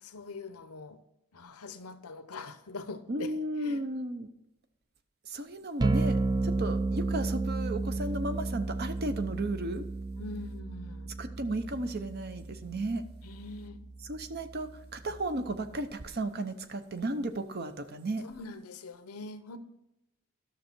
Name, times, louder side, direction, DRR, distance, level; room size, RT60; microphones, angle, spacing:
voice 1, 0.0-1.0 1.3-3.3 3.6-3.8 10.1-11.1 13.2-13.8 18.2-19.6, left 3 dB, 90° left, 10 dB, 0.8 m, -43 dB
voice 2, 3.1-4.3 5.3-9.9 11.2-13.0 14.1-18.3, right 2 dB, 45° right, 10 dB, 0.7 m, -34 dB
sound 1, 5.8-15.8, right 3 dB, 20° right, 0.3 m, -33 dB
12.5 x 6.4 x 4.5 m, 0.91 s
head